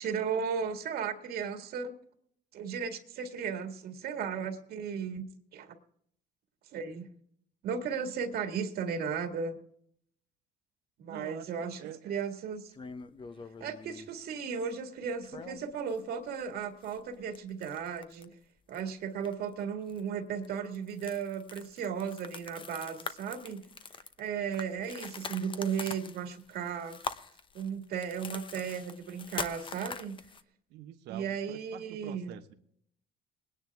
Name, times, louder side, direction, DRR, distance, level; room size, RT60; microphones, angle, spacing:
voice 1, 0.0-1.9 2.5-5.3 5.5-5.7 6.7-7.1 7.6-9.6 11.0-12.7 13.6-18.3 18.7-23.6 24.2-27.0 27.5-30.2 31.1-32.3, right 6 dB, 65° right, 5 dB, 1.9 m, -35 dB
voice 2, 11.1-12.2 30.7-32.5, right 11 dB, 85° right, 7 dB, 1.2 m, -46 dB
sound 1, 12.7-14.1 15.2-16.0 16.3-16.4 16.8-18.3 18.7-18.9 19.2-19.5 19.9-20.0 20.4-30.4, left 5 dB, 30° left, 0.9 m, -43 dB
21.0 x 10.0 x 3.5 m, 0.68 s
cardioid pair, 110°, 17 cm